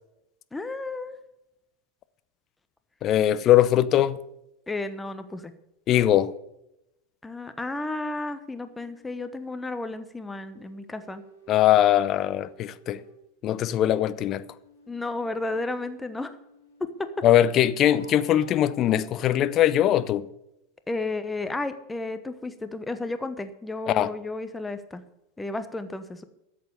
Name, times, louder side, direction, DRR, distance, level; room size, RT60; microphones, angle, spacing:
voice 1, 0.5-1.2 4.7-5.5 7.2-11.2 14.9-16.4 16.8-17.2 20.9-25.0 25.4-26.2, left 2 dB, 10° left, 1.0 m, -32 dB
voice 2, 3.0-4.2 5.9-6.3 11.5-13.0 13.4-14.4 17.2-20.3 23.9-24.1, left 12 dB, 35° left, 0.7 m, -21 dB
sound 1, 8.2-9.6 10.4-13.2 13.8-17.2 17.8-19.3, equal, 75° left, 5.2 m, -53 dB
13.5 x 7.8 x 6.7 m
figure-of-eight pair, 85°, 0 cm